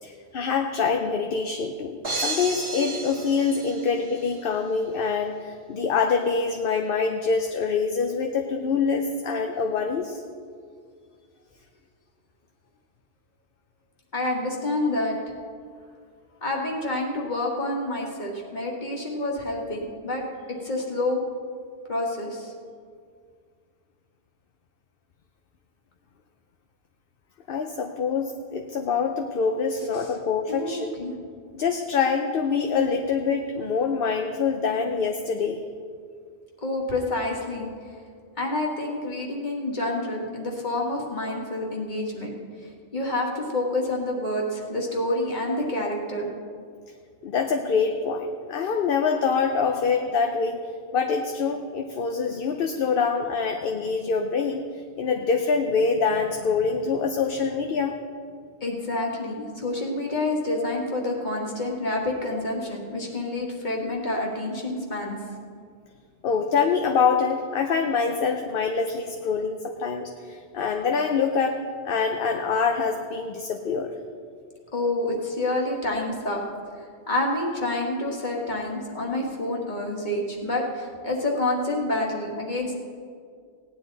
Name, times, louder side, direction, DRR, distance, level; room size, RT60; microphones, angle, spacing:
voice 1, 0.0-10.2 27.5-31.0 31.5-35.6 47.2-50.6 50.9-54.6 55.0-57.9 66.2-71.6 71.8-73.9, left 5 dB, 60° left, 5 dB, 0.8 m, -25 dB
sound 1, 2.0-4.3, right 3 dB, 25° right, 1.6 m, -32 dB
voice 2, 14.1-15.2 16.4-20.2 20.5-21.2 21.9-22.5 30.5-31.1 36.6-37.7 38.4-42.3 42.9-46.3 58.6-65.2 74.7-76.4 77.1-82.7, left 2 dB, 45° left, -1 dB, 1.9 m, -28 dB
17.5 x 10.0 x 4.0 m, 2.2 s
omnidirectional pair, 1.1 m